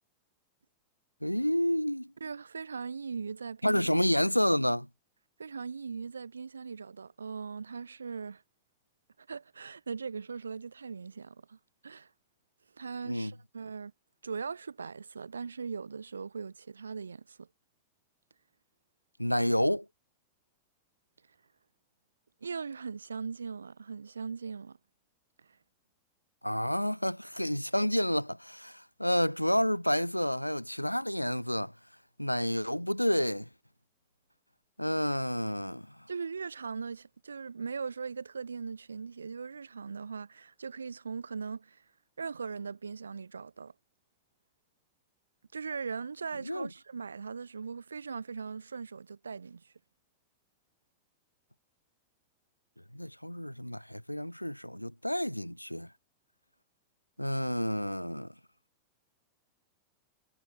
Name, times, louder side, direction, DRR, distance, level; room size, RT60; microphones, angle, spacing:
voice 1, 1.2-2.1 3.6-4.9 13.0-13.3 19.2-19.9 26.4-31.7 32.2-33.5 34.8-36.0 46.4-46.7 52.9-55.9 57.2-58.3, equal, 90° left, 0.4 m, -29 dB
voice 2, 2.2-3.9 5.4-8.4 9.2-11.6 11.8-12.1 12.8-13.9 14.2-17.5 22.4-24.8 36.1-41.8 42.2-43.7 45.5-49.7, right 5 dB, 75° right, 1.3 m, -39 dB
figure-of-eight pair, 90°, 0 cm